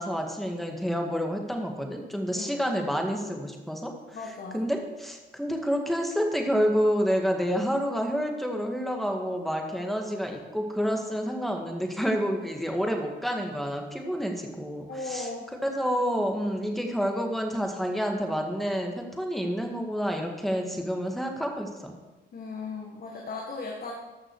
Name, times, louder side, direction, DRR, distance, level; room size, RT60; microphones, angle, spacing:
voice 1, 0.0-3.9 4.5-15.3 15.6-21.9, equal, ahead, 2 dB, 1.8 m, -29 dB
voice 2, 4.1-4.6 14.9-15.5 22.3-23.9, left 3 dB, 50° left, 0 dB, 1.6 m, -36 dB
13.5 x 6.3 x 4.7 m, 1.1 s
cardioid pair, 90°, 20 cm